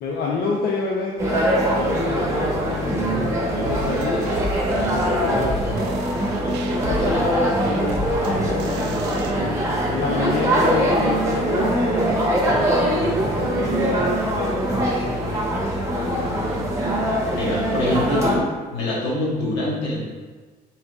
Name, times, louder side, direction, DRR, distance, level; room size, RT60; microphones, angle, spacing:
voice 1, 0.0-4.4 4.8-5.9 6.7-9.1 9.9-11.9 12.4-15.6 15.9-16.5, left 3 dB, 65° left, -3 dB, 0.6 m, -28 dB
sound 1, 1.2-18.4, right 1 dB, 15° right, 1.0 m, -22 dB
sound 2, 3.7-9.3, right 1 dB, 90° right, 0.5 m, -33 dB
voice 2, 6.8-7.3 17.3-20.0, left 1 dB, 85° left, -5 dB, 1.3 m, -25 dB
4.4 x 3.9 x 2.4 m, 1.4 s
cardioid pair, 110°, 17 cm